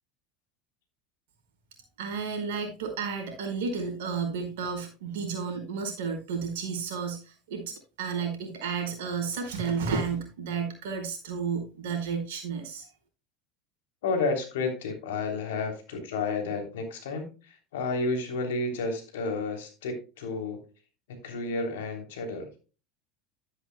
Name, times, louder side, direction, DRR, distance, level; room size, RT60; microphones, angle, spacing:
voice 1, 2.0-12.9, right 5 dB, 75° right, 4 dB, 4.6 m, -32 dB
voice 2, 14.0-20.6 21.1-22.5, left 3 dB, 75° left, 5 dB, 3.2 m, -31 dB
13.0 x 9.8 x 2.2 m, 0.32 s
hypercardioid pair, 80°, 0 cm